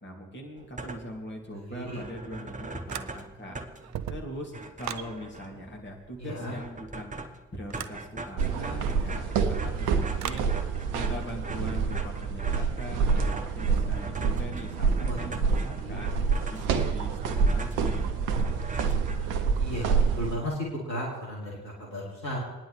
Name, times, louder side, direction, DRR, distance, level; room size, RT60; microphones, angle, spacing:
voice 1, 0.0-3.6 4.1-7.1 7.5-10.5 10.9-16.1 16.5-18.2, equal, 20° left, 0 dB, 2.6 m, -41 dB
sound 1, 0.6-1.3 1.6-1.7 1.8-19.7, right 2 dB, 15° right, 1.0 m, -42 dB
sound 2, 2.9-3.5 3.8-5.1 7.7-8.0 10.2-10.5, right 10 dB, 35° right, 0.6 m, -37 dB
voice 2, 6.2-6.5 15.1-15.5 15.8-16.0 19.6-20.6 20.9-22.4, equal, 90° left, -5 dB, 2.2 m, -35 dB
sound 3, 8.4-20.4, right 5 dB, 65° right, 0.9 m, -27 dB
22.0 x 9.9 x 3.4 m, 1.1 s
figure-of-eight pair, 45°, 49 cm